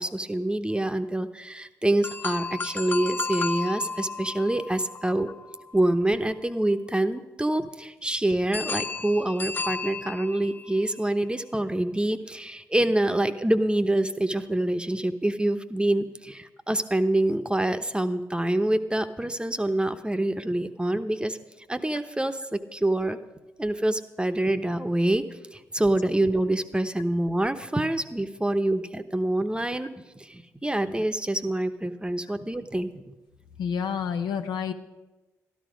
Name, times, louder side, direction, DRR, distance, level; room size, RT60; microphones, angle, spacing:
voice 1, 0.0-5.3 5.7-21.4 21.7-23.2 23.6-25.2 25.5-29.9 30.2-33.1, right 1 dB, 15° right, 10 dB, 0.9 m, -26 dB
sound 1, 2.0-6.1 8.5-10.9, left 4 dB, 25° left, 0.5 m, -33 dB
voice 2, 33.6-34.7, left 7 dB, 80° left, 6 dB, 0.7 m, -29 dB
12.5 x 11.5 x 5.1 m, 1.1 s
supercardioid pair, 40°, 7 cm